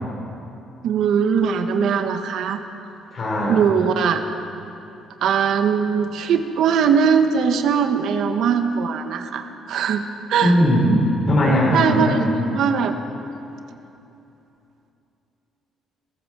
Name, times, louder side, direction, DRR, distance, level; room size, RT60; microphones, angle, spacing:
voice 1, 0.8-2.6 3.5-4.2 5.2-10.0 10.3-10.5 11.7-13.0, right 7 dB, 55° right, 7 dB, 1.2 m, -20 dB
voice 2, 3.1-3.6 10.4-12.3, equal, 35° left, -4 dB, 3.7 m, -18 dB
22.5 x 16.5 x 7.5 m, 2.9 s
cardioid pair, 180°, 0 cm